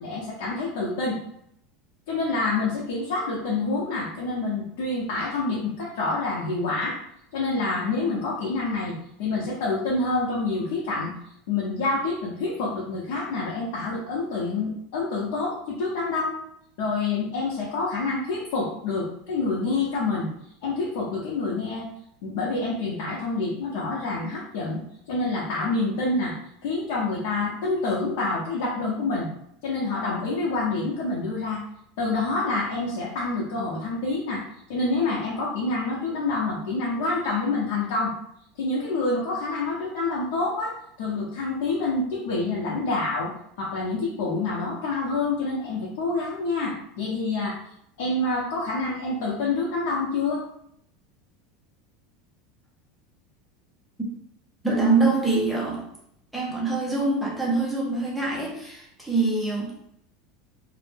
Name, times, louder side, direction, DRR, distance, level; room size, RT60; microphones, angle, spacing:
voice 1, 0.0-1.2 2.1-7.0 7.3-11.1 11.5-16.4 16.8-20.3 20.6-21.9 22.2-24.8 25.1-26.3 26.6-29.3 29.6-31.6 32.0-38.1 38.6-43.3 43.6-47.6 48.0-50.4, left 3 dB, 60° left, -5 dB, 0.7 m, -27 dB
voice 2, 54.6-55.8 56.3-59.8, right 3 dB, ahead, -5 dB, 0.5 m, -24 dB
2.7 x 2.1 x 3.3 m, 0.73 s
supercardioid pair, 180°, 0 cm